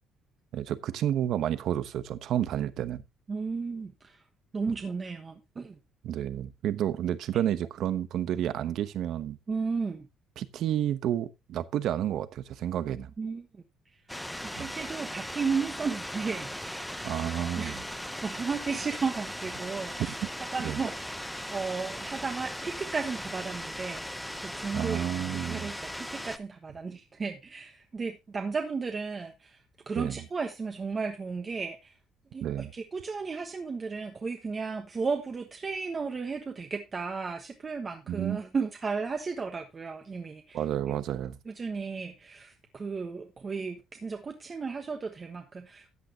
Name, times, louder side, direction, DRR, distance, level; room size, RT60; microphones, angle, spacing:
voice 1, 0.5-3.0 6.0-9.4 10.4-13.1 14.6-14.7 17.0-17.8 20.6-20.8 24.7-25.7 30.0-30.2 32.4-32.7 38.1-38.4 40.5-41.4, right 11 dB, 65° right, 1.0 m, -30 dB
voice 2, 3.3-4.2 4.5-5.8 9.5-10.1 13.2-13.6 14.4-17.0 17.6-17.8 18.2-20.2 20.5-21.1 21.5-25.1 25.4-29.6 29.9-31.9 32.3-40.6 41.5-45.9, right 4 dB, 25° right, 1.2 m, -34 dB
sound 1, 14.1-26.4, equal, 5° left, 0.7 m, -38 dB
13.5 x 9.1 x 2.9 m
cardioid pair, 140°, 0 cm